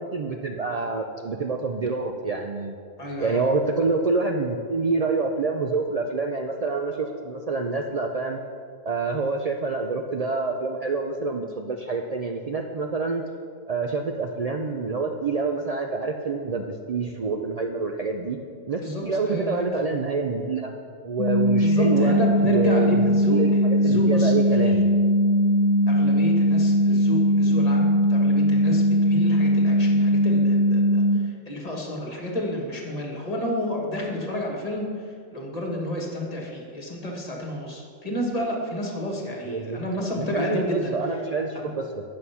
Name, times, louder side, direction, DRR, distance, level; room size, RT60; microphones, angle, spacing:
voice 1, 0.0-2.8 3.2-8.4 8.8-13.2 13.7-18.4 18.7-20.7 21.0-22.2 22.4-24.8 39.5-39.8 40.3-42.0, right 4 dB, 75° right, 2 dB, 0.3 m, -27 dB
voice 2, 3.0-3.4 18.8-19.7 21.6-24.8 25.9-35.1 35.3-41.0 41.5-41.7, left 1 dB, 30° left, 0 dB, 1.4 m, -30 dB
sound 1, 21.2-31.2, equal, 90° left, 1.2 m, -20 dB
9.6 x 6.5 x 5.6 m, 2.2 s
omnidirectional pair, 1.4 m